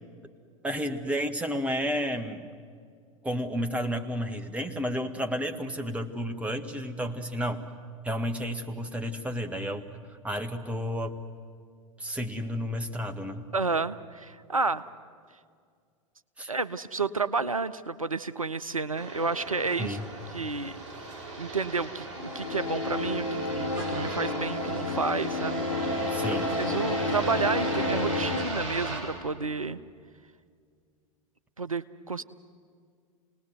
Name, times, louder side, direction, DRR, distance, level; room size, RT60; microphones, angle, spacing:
voice 1, 0.6-2.5 3.2-7.6 8.0-9.9 10.2-11.2 12.0-13.5 16.4-16.5 19.8-20.1 26.1-26.7, equal, 10° right, 5 dB, 1.6 m, -31 dB
voice 2, 13.5-14.9 16.5-20.0 20.3-20.7 21.4-29.8 31.6-32.2, right 4 dB, 90° right, 13 dB, 0.6 m, -31 dB
sound 1, 18.9-29.0, right 2 dB, 60° right, 6.1 m, -37 dB
sound 2, 22.2-28.5, left 2 dB, 75° left, 1.5 m, -30 dB
28.0 x 19.5 x 7.9 m, 2.1 s
figure-of-eight pair, 85°, 17 cm